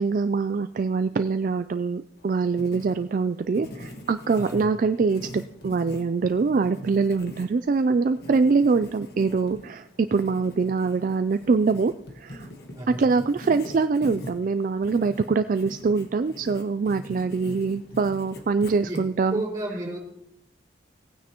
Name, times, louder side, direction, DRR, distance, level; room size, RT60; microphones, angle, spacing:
voice 1, 0.0-12.5 13.0-19.4, right 4 dB, 45° right, 10 dB, 0.3 m, -24 dB
Writing, 2.2-19.3, left 1 dB, 60° left, 1.4 m, -43 dB
voice 2, 4.3-4.7 12.7-13.0 18.8-19.0 19.3-20.0, right 1 dB, 20° right, -6 dB, 4.7 m, -32 dB
18.0 x 9.3 x 3.0 m, 0.78 s
head